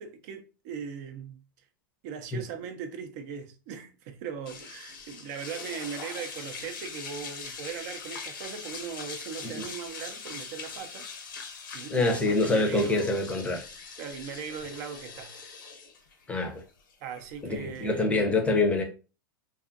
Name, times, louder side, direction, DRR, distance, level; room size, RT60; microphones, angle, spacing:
voice 1, 0.0-1.4 2.0-11.1 11.7-13.2 14.0-15.4 17.0-18.3, right 7 dB, 55° right, 0.5 m, -39 dB
sound 1, 4.5-18.0, left 5 dB, 70° left, 0.7 m, -42 dB
voice 2, 11.9-13.6 16.3-16.6 17.4-18.8, left 2 dB, 10° left, 0.6 m, -26 dB
2.6 x 2.4 x 2.5 m
hypercardioid pair, 120°, 11 cm